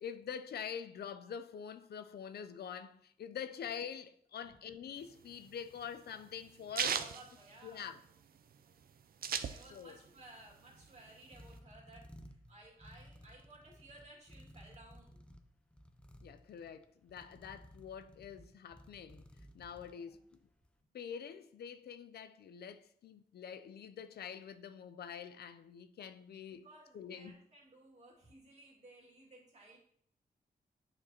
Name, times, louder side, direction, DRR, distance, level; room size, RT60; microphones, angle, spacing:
voice 1, 0.0-7.0 7.6-8.0 9.7-10.0 16.2-19.2 19.5-20.3 20.9-26.7 26.9-27.4, left 8 dB, 80° left, 0.5 m, -46 dB
voice 2, 4.4-4.7 6.7-8.0 9.5-15.2 19.9-20.2 26.5-29.8, right 2 dB, 45° right, 2.3 m, -58 dB
sound 1, 5.0-8.2 8.5-8.6 8.8-10.1 10.4-11.6, right 7 dB, 65° right, 0.5 m, -37 dB
sound 2, 10.0-20.6, equal, 5° left, 0.5 m, -58 dB
9.6 x 4.3 x 2.9 m
wide cardioid pair, 125°, 16 cm